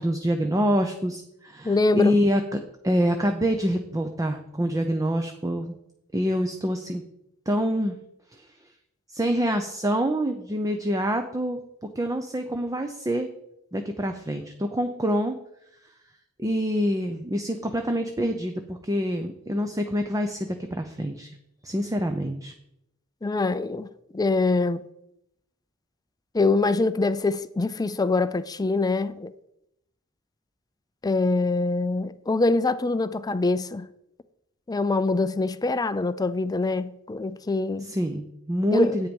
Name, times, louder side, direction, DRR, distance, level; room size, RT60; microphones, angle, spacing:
voice 1, 0.0-5.8 6.1-7.0 7.5-8.0 8.3-8.5 9.1-11.6 11.9-13.3 13.7-15.4 16.4-21.3 21.6-22.5 37.8-39.1, equal, 15° right, 0.7 m, -26 dB
voice 2, 1.6-2.2 23.2-23.9 24.1-24.8 26.3-29.3 31.0-33.9 34.7-37.9 38.7-39.0, left 3 dB, 20° left, 0.4 m, -24 dB
9.9 x 8.9 x 5.4 m
head